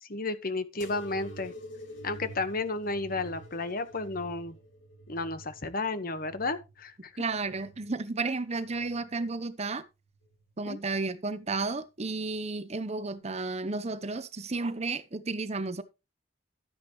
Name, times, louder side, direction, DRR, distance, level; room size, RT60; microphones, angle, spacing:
voice 1, 0.0-1.5 2.0-4.5 5.1-7.1 10.7-10.8, left 3 dB, 50° left, 1.3 m, -32 dB
sound 1, 0.8-8.0 8.5-9.3 10.1-10.6 11.6-11.7, right 1 dB, 80° left, 2.2 m, -48 dB
voice 2, 7.2-9.8 10.6-15.8, right 3 dB, 35° right, 0.9 m, -32 dB
12.5 x 9.4 x 3.1 m
head